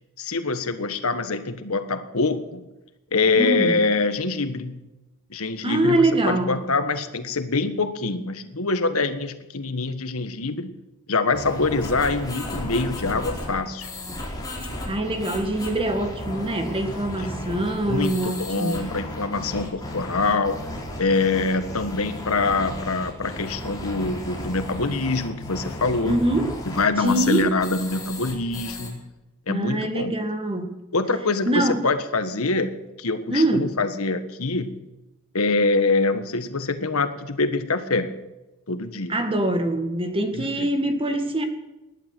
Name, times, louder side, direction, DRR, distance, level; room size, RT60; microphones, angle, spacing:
voice 1, 0.2-2.6 3.1-4.8 5.3-10.7 11.1-13.9 17.1-17.4 17.8-20.6 21.0-26.2 26.7-29.1 29.5-30.1 30.9-34.8 35.3-38.1 38.7-39.1 40.3-40.7, left 3 dB, 90° left, 9 dB, 1.5 m, -25 dB
voice 2, 3.3-3.7 5.6-6.6 14.9-18.8 26.0-26.5 27.0-27.5 29.5-30.7 31.5-31.8 33.3-33.7 39.1-41.4, right 1 dB, 25° right, 6 dB, 2.0 m, -24 dB
sound 1, 11.3-28.9, left 1 dB, 20° left, 4.3 m, -34 dB
19.5 x 12.0 x 6.2 m, 1.0 s
head